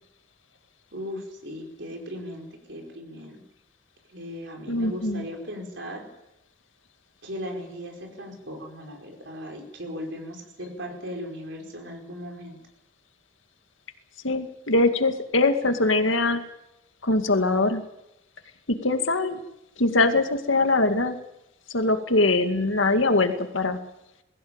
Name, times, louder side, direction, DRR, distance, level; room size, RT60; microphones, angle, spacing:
voice 1, 0.9-3.4 4.1-6.1 7.2-12.6, equal, 60° right, 2 dB, 4.8 m, -37 dB
voice 2, 4.7-5.3 14.2-16.4 17.0-17.8 18.7-19.4 19.8-21.2 21.7-23.8, left 2 dB, 75° left, 7 dB, 2.2 m, -22 dB
22.0 x 16.0 x 8.9 m, 0.86 s
head